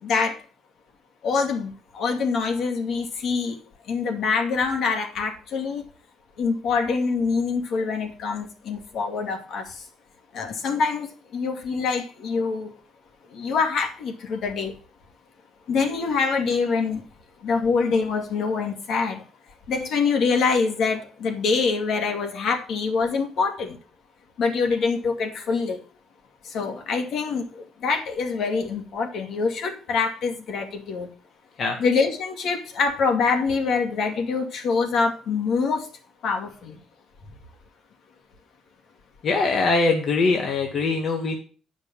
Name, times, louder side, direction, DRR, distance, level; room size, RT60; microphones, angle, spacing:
voice 1, 0.0-0.4 1.2-3.6 3.9-5.9 6.4-9.8 10.3-12.7 13.3-14.7 15.7-17.1 17.4-19.2 19.7-23.8 24.4-25.8 26.4-31.1 31.8-35.9 36.2-36.8, left 5 dB, 70° left, 4 dB, 2.3 m, -25 dB
voice 2, 39.2-41.4, left 3 dB, 50° left, 2 dB, 1.7 m, -22 dB
8.8 x 5.4 x 7.1 m, 0.38 s
cardioid pair, 105°, 0 cm